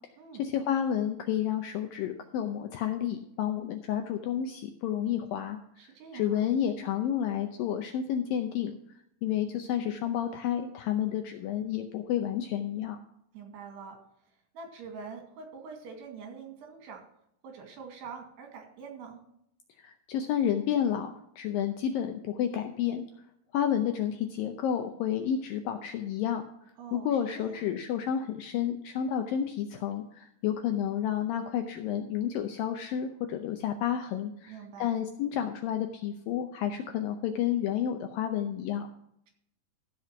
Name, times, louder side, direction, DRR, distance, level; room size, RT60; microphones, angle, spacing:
voice 1, 0.4-5.6 6.1-8.8 9.2-13.0 19.8-21.1 21.4-23.0 23.5-26.4 26.9-38.9, left 9 dB, 80° left, 6 dB, 2.1 m, -30 dB
voice 2, 5.8-6.5 13.3-14.0 14.5-17.0 17.4-19.2 26.8-27.6 34.5-35.0, right 5 dB, 80° right, 3 dB, 4.3 m, -45 dB
15.0 x 5.2 x 5.7 m, 0.73 s
omnidirectional pair, 4.8 m